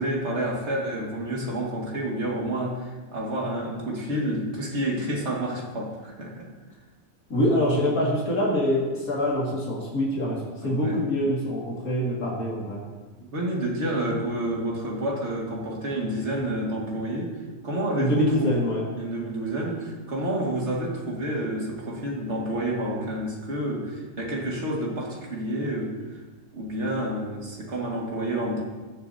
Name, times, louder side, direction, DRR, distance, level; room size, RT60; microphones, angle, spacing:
voice 1, 0.0-6.5 10.6-11.0 13.3-17.3 17.6-18.6 19.0-25.9 26.5-28.6, right 1 dB, 50° right, -2 dB, 2.2 m, -29 dB
voice 2, 7.3-12.8 18.0-18.8, left 1 dB, 75° left, -5 dB, 2.6 m, -25 dB
20.0 x 6.9 x 2.8 m, 1.3 s
omnidirectional pair, 1.5 m